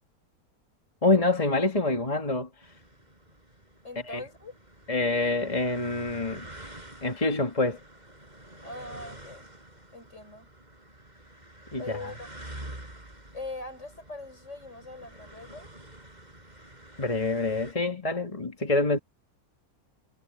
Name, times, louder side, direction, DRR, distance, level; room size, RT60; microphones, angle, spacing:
voice 1, 1.0-2.5 4.1-4.2 4.9-6.5 7.0-7.8 11.7-12.0 17.0-19.0, left 2 dB, 25° left, 1.9 m, -26 dB
sound 1, 2.6-17.7, right 1 dB, 25° right, 6.5 m, -48 dB
voice 2, 3.8-4.6 8.6-9.5 9.9-10.5 11.8-12.3 13.3-15.7, left 2 dB, 50° left, 5.7 m, -41 dB
omnidirectional pair, 1.6 m